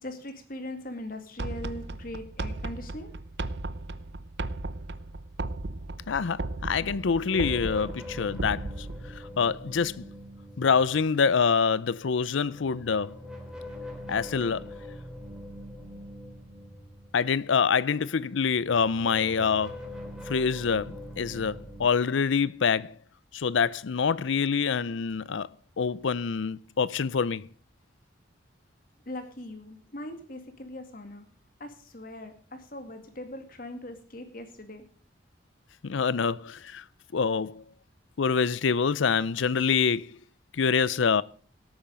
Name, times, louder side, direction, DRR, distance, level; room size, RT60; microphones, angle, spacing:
voice 1, 0.0-3.1 29.1-31.2 31.6-34.9, left 1 dB, 45° left, 2.1 m, -40 dB
sound 1, 1.4-9.2, right 2 dB, 60° right, 0.8 m, -36 dB
voice 2, 6.1-8.9 9.1-10.0 10.6-13.2 14.1-14.7 17.1-19.8 20.3-23.0 23.3-25.5 25.8-27.5 35.8-36.8 37.1-37.6 38.2-40.2 40.5-41.2, left 6 dB, 80° left, 0.5 m, -26 dB
sound 2, 7.3-11.5 12.3-18.0 18.4-21.9, left 1 dB, 5° right, 3.0 m, -43 dB
17.5 x 8.8 x 5.2 m
head